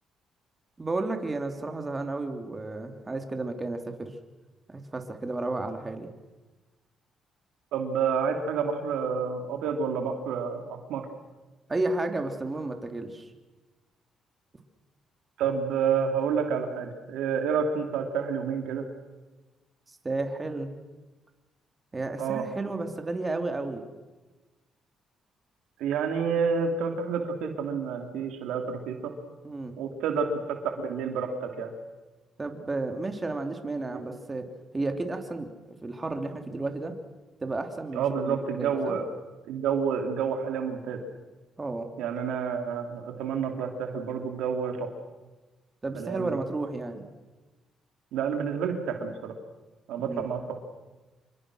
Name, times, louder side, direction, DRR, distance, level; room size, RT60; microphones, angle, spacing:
voice 1, 0.8-4.1 4.7-6.1 11.7-13.3 19.9-20.7 21.9-23.8 29.4-29.7 32.4-34.5 34.7-35.5 35.8-36.9 37.4-38.9 41.6-41.9 45.8-47.1 50.1-50.3, right 2 dB, 25° right, 5 dB, 3.0 m, -32 dB
voice 2, 7.7-11.1 15.4-18.9 22.2-22.4 25.8-29.1 29.8-31.7 33.9-34.0 37.9-39.1 39.4-41.0 42.0-44.9 45.9-46.4 48.1-49.3 49.9-50.6, right 6 dB, 90° right, 5 dB, 3.1 m, -29 dB
27.0 x 24.0 x 6.3 m, 1.2 s
cardioid pair, 90°, 0 cm